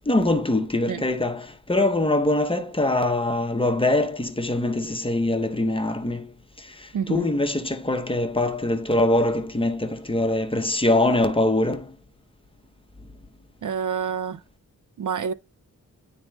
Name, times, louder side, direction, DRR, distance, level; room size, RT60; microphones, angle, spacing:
voice 1, 0.1-12.0, left 2 dB, 15° left, 0.7 m, -23 dB
voice 2, 6.9-7.3 13.6-14.4 15.0-15.3, right 7 dB, 60° right, 0.5 m, -28 dB
10.0 x 4.1 x 2.2 m
wide cardioid pair, 120°, 35 cm